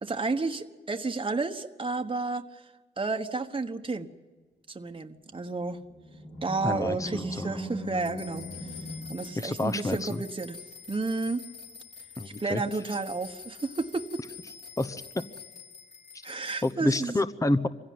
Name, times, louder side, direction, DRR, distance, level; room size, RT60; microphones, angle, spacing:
voice 1, 0.0-2.7 3.0-4.1 4.7-5.8 6.4-8.8 9.1-10.6 10.9-11.5 12.2-14.2 16.2-17.1, right 3 dB, 30° right, 5 dB, 1.2 m, -31 dB
Animal, 5.6-10.0, equal, 55° left, 5.3 m, -39 dB
voice 2, 6.6-7.6 9.4-10.2 12.2-12.6 14.8-15.3 16.6-17.7, left 2 dB, 20° left, 11 dB, 0.9 m, -29 dB
sound 1, 8.0-16.7, left 6 dB, 70° left, 3.6 m, -47 dB
23.5 x 16.0 x 9.5 m, 1.4 s
cardioid pair, 75°, 18 cm